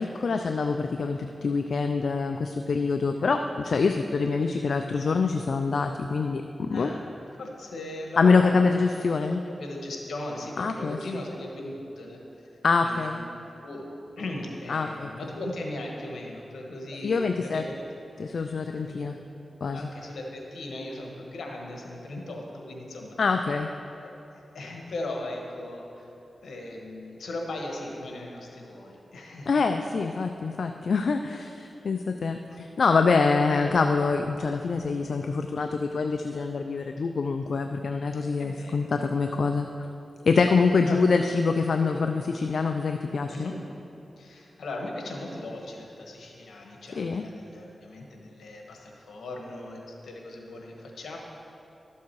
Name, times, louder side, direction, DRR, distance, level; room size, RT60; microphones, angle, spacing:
voice 1, 0.0-6.9 8.2-9.4 10.6-11.0 12.6-13.2 14.7-15.1 17.0-17.6 18.2-19.2 19.6-19.9 23.2-23.7 29.5-39.7 40.2-43.5 47.0-47.2, left 4 dB, 75° left, 6 dB, 0.4 m, -25 dB
voice 2, 6.7-7.0 7.4-8.6 9.6-13.2 13.6-13.9 14.2-17.7 18.8-19.0 19.7-23.2 23.9-26.1 26.4-29.6 38.4-38.8 40.8-41.1 43.3-43.6 44.2-51.2, left 1 dB, 90° left, 0 dB, 1.4 m, -38 dB
12.5 x 7.2 x 4.7 m, 2.9 s
cardioid pair, 55°, 0 cm